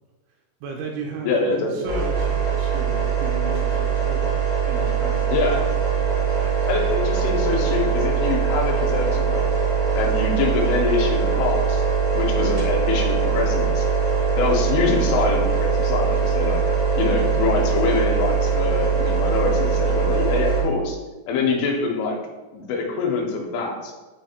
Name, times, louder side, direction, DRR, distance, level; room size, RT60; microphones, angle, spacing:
voice 1, 0.6-4.3 4.6-6.7 21.4-21.6, right 3 dB, 85° right, 0 dB, 2.9 m, -35 dB
voice 2, 1.2-1.9 5.3-5.6 6.7-9.5 10.0-11.8 12.1-13.8 14.4-16.6 17.0-21.0 21.3-22.2 22.5-23.9, left 4 dB, 80° left, 1 dB, 3.1 m, -24 dB
sound 1, 1.8-20.6, right 6 dB, 65° right, 1.1 m, -22 dB
8.4 x 3.1 x 4.3 m, 1.2 s
omnidirectional pair, 5.9 m